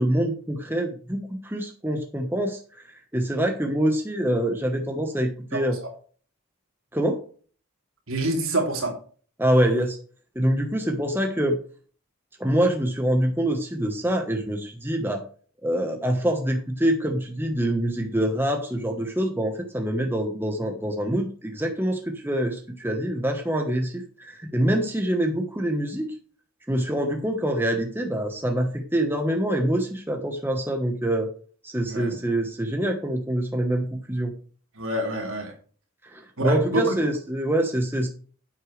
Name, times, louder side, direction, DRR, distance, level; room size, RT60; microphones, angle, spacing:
voice 1, 0.0-2.9 3.1-5.8 6.9-7.2 9.4-10.0 10.3-11.6 12.4-15.2 15.6-26.1 26.7-31.3 31.6-34.3 36.1-38.1, right 1 dB, 10° right, 3 dB, 1.2 m, -25 dB
voice 2, 5.5-5.9 8.1-9.0 31.9-32.1 34.7-35.5 36.4-37.0, right 1 dB, 70° right, 1 dB, 3.3 m, -27 dB
10.0 x 8.2 x 3.3 m, 0.41 s
head